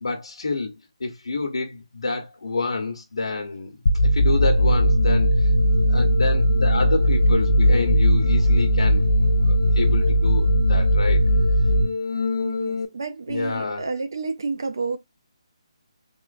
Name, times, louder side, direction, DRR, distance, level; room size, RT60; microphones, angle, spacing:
voice 1, 0.0-0.7 1.0-3.8 4.0-5.5 5.9-9.0 9.5-11.2 13.3-13.9, left 3 dB, 75° left, 0.9 m, -28 dB
sound 1, 3.9-12.9, equal, 45° left, 0.4 m, -19 dB
sound 2, 6.8-11.3, left 1 dB, 80° right, 1.4 m, -28 dB
voice 2, 12.4-15.0, right 4 dB, 40° right, 0.4 m, -30 dB
3.7 x 3.0 x 2.4 m
hypercardioid pair, 180°, 3 cm